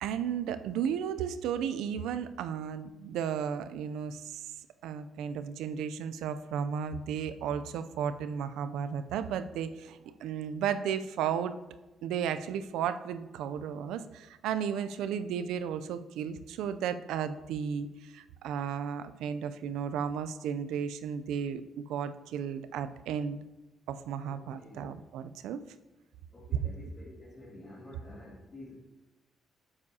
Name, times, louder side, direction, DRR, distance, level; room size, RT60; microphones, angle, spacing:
voice 1, 0.0-4.4 4.8-11.5 12.0-23.4 23.9-25.6, right 8 dB, 90° right, 11 dB, 0.4 m, -34 dB
voice 2, 24.2-25.0 26.3-28.8, left 1 dB, 35° left, -9 dB, 2.4 m, -50 dB
9.6 x 7.2 x 2.8 m, 1.1 s
cardioid pair, 90°, 0 cm